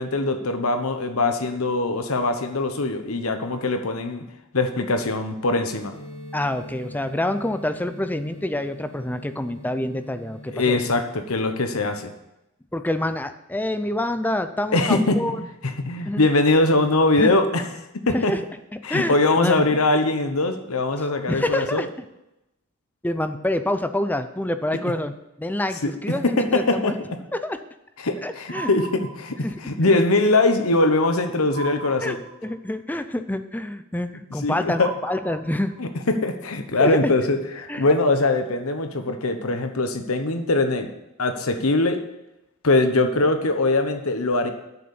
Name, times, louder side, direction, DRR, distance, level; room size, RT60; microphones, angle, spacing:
voice 1, 0.0-4.2 4.5-5.9 10.5-12.1 14.7-15.4 15.6-17.7 18.1-18.3 18.8-21.8 25.8-25.9 26.2-26.9 28.0-32.2 34.4-34.9 35.8-40.9 41.2-42.0 42.6-44.5, left 2 dB, 80° left, 7 dB, 1.1 m, -22 dB
sound 1, 5.9-10.9, equal, 60° left, 2.0 m, -41 dB
voice 2, 6.3-10.8 12.7-15.4 16.1-16.2 17.2-17.3 18.1-18.4 18.9-19.6 21.3-21.9 23.0-25.1 25.4-26.9 27.4-27.6 28.2-28.7 29.4-29.6 29.8-30.0 32.0-32.2 32.4-35.8 36.8-37.1 37.7-37.9, left 1 dB, 10° left, 9 dB, 0.5 m, -27 dB
sound 2, 28.5-29.7 31.5-32.7 34.7-36.0, right 5 dB, 55° right, 3.1 m, -38 dB
8.7 x 6.7 x 7.1 m, 0.90 s
head